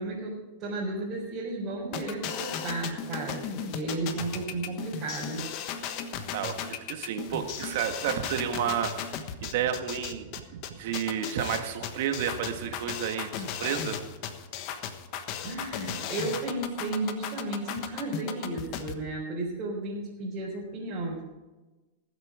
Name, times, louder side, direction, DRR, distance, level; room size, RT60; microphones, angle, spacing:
voice 1, 0.0-5.5 15.4-21.2, right 2 dB, 35° right, -6 dB, 4.0 m, -34 dB
sound 1, 1.9-18.9, left 8 dB, 50° left, 1.2 m, -36 dB
voice 2, 6.3-14.0, right 9 dB, 65° right, 6 dB, 1.7 m, -31 dB
19.0 x 8.1 x 5.0 m, 1.2 s
hypercardioid pair, 130°, 0 cm